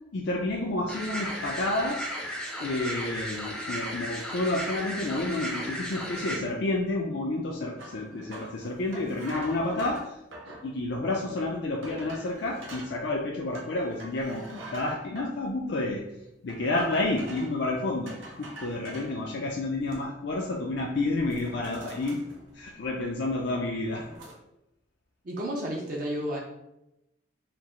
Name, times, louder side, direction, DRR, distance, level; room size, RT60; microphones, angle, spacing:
voice 1, 0.1-2.1 2.6-10.2 10.5-16.0 16.4-22.2 22.5-24.1, left 2 dB, 65° left, -1 dB, 0.4 m, -30 dB
sound 1, 0.9-6.4, equal, 5° left, 0.5 m, -35 dB
sound 2, 7.8-10.7 11.3-11.4 11.8-12.9 13.5-15.3 16.5-17.6 18.1-19.1 19.6-20.3 20.6-20.8 21.1-23.0 23.4-24.3, right 2 dB, 85° right, 0.9 m, -45 dB
voice 2, 25.2-26.4, equal, 45° right, -2 dB, 0.5 m, -31 dB
4.4 x 2.0 x 3.7 m, 0.88 s
head